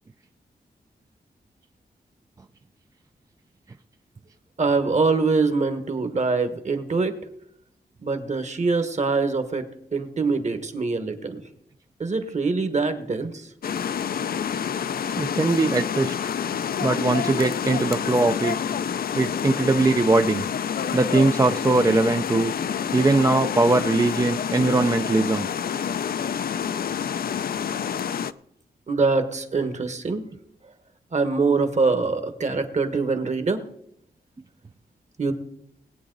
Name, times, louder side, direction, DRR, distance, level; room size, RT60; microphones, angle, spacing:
voice 1, 4.6-7.2 8.0-9.7 9.9-11.4 12.0-13.4 28.9-30.3 31.1-33.6 35.2-35.3, right 4 dB, 45° right, 9 dB, 1.3 m, -24 dB
sound 1, 13.6-28.3, left 8 dB, 65° left, 0.4 m, -28 dB
voice 2, 15.2-16.3 16.8-18.6 19.1-20.4 20.9-22.5 22.9-25.5, right 3 dB, 20° right, 7 dB, 0.4 m, -21 dB
20.0 x 8.4 x 3.9 m, 0.73 s
wide cardioid pair, 150°, 17 cm